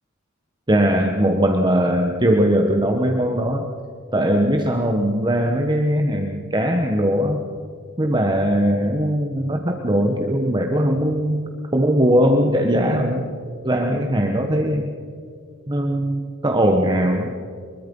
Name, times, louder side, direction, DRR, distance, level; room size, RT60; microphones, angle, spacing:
voice 1, 0.7-3.7 4.1-7.5 8.0-13.3 13.6-14.9 15.7-17.3, equal, 20° right, 3 dB, 1.3 m, -20 dB
24.0 x 22.0 x 5.5 m, 2.2 s
head